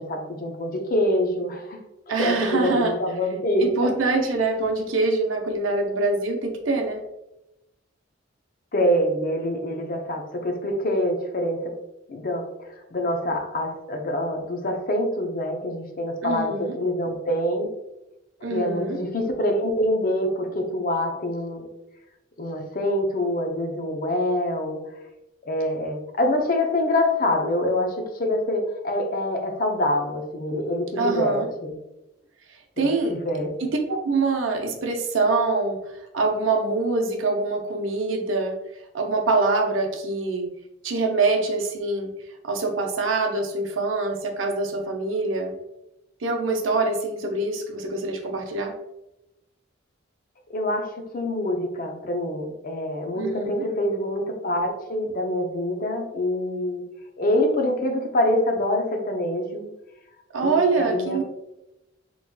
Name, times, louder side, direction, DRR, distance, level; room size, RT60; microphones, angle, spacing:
voice 1, 0.0-1.8 2.2-3.9 8.7-11.7 12.1-17.7 18.5-21.7 22.4-24.8 25.4-31.8 32.8-33.7 50.5-56.8 57.2-59.7 60.4-61.2, left 1 dB, 45° left, 3 dB, 0.5 m, -25 dB
voice 2, 2.1-3.0 3.6-7.0 16.2-16.8 18.4-19.0 31.0-31.5 32.8-33.1 33.6-38.5 38.9-40.5 40.8-42.1 42.4-45.5 46.2-48.7 53.1-53.6 60.3-61.2, right 3 dB, 85° right, 3 dB, 0.6 m, -24 dB
3.8 x 3.0 x 2.2 m, 0.90 s
head